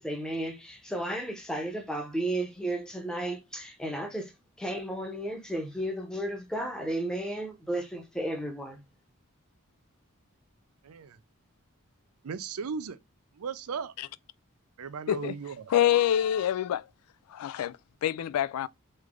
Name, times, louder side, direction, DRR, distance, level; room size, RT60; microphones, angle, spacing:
voice 1, 0.0-4.3 4.6-8.8, right 1 dB, 5° left, 0.8 m, -33 dB
voice 2, 10.8-11.2 12.2-13.0 13.3-13.9 14.8-15.7, right 6 dB, 90° right, 0.5 m, -36 dB
voice 3, 15.7-16.8 17.3-18.7, left 11 dB, 90° left, 0.3 m, -26 dB
3.2 x 3.2 x 3.7 m
head